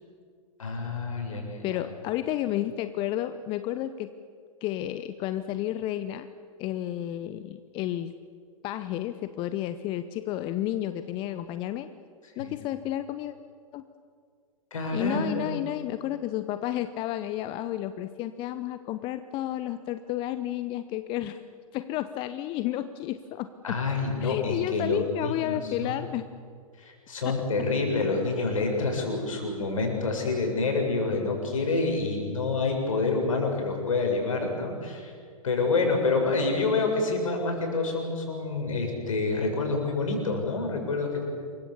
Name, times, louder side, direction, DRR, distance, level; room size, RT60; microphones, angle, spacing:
voice 1, 0.6-1.8 12.4-12.5 14.7-15.6 23.6-26.0 26.8-35.1 35.4-41.2, left 3 dB, 65° left, 2 dB, 7.2 m, -28 dB
voice 2, 1.6-4.1 4.6-6.3 6.6-8.2 8.6-11.9 12.4-13.3 13.7-13.8 14.9-21.4 21.7-23.8 24.2-26.3 27.2-27.4, left 13 dB, 30° left, 12 dB, 0.8 m, -31 dB
28.0 x 23.0 x 7.3 m, 2.2 s
figure-of-eight pair, 110°, 18 cm